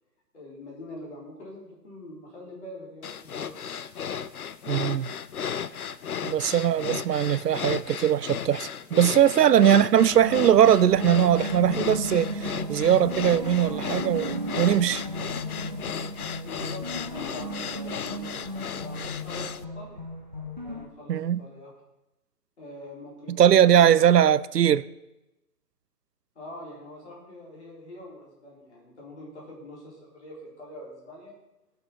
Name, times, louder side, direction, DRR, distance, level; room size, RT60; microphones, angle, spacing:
voice 1, 0.3-3.5 16.4-20.0 20.6-21.7 22.6-24.1 26.3-31.3, left 1 dB, 45° left, 4.3 m, -44 dB
sound 1, 3.0-19.6, left 7 dB, 65° left, 0.6 m, -35 dB
voice 2, 4.7-5.1 6.2-15.0 21.1-21.4 23.3-24.8, right 10 dB, 75° right, 0.5 m, -20 dB
sound 2, 10.0-20.9, equal, 30° right, 0.5 m, -35 dB
17.0 x 6.6 x 4.6 m
hypercardioid pair, 170°, 49 cm